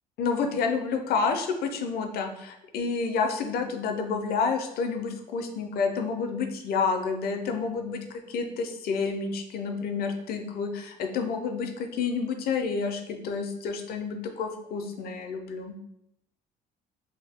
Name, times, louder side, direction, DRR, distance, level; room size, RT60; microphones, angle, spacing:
voice 1, 0.2-15.8, left 5 dB, 65° left, 5 dB, 0.5 m, -29 dB
2.7 x 2.6 x 3.4 m, 0.82 s
cardioid pair, 110°, 17 cm